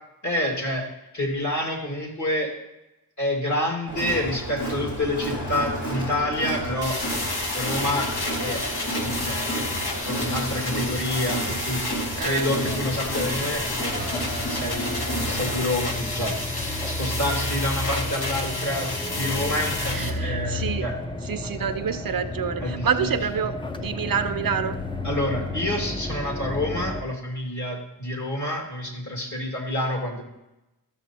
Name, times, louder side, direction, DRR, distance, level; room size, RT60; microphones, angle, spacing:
voice 1, 0.2-2.5 3.2-7.0 7.5-8.1 8.4-8.6 9.0-9.5 10.0-11.8 12.2-20.9 22.6-23.4 25.0-30.2, left 1 dB, 50° left, 0 dB, 2.2 m, -28 dB
Crowd, 3.9-15.6, right 1 dB, 90° left, 2.9 m, -31 dB
sound 1, 6.8-20.1, left 2 dB, 70° left, 1.3 m, -31 dB
voice 2, 12.2-12.5 19.9-20.9 21.3-24.8, right 7 dB, 60° right, 9 dB, 0.5 m, -27 dB
sound 2, 12.5-27.0, left 2 dB, 15° left, 0.5 m, -32 dB
13.0 x 6.7 x 2.8 m, 0.94 s
wide cardioid pair, 80°, 39 cm